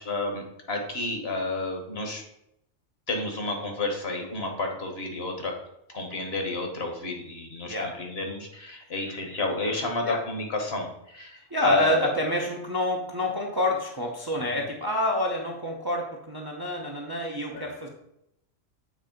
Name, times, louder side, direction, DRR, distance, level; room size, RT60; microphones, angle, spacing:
voice 1, 0.0-2.2 3.1-5.5 5.9-12.1 17.5-17.7, left 2 dB, 50° left, 3 dB, 1.4 m, -31 dB
voice 2, 11.5-17.9, left 1 dB, 20° right, -1 dB, 0.6 m, -28 dB
7.3 x 3.3 x 5.1 m, 0.80 s
omnidirectional pair, 1.4 m